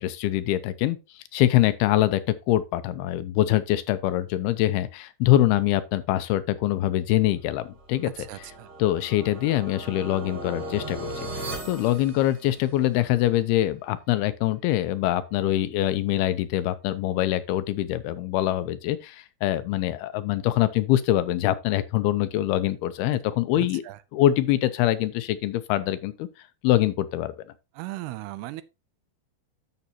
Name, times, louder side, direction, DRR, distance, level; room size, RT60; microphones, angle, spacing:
voice 1, 0.0-2.2 2.5-8.1 8.8-23.8 24.1-26.3 26.6-27.3, left 14 dB, 85° left, 2.5 m, -24 dB
sound 1, 7.7-12.9, right 1 dB, 25° right, 2.6 m, -38 dB
voice 2, 8.0-8.7 23.6-24.0 27.8-28.6, right 17 dB, 80° right, 2.5 m, -37 dB
11.0 x 7.1 x 2.9 m
omnidirectional pair, 4.7 m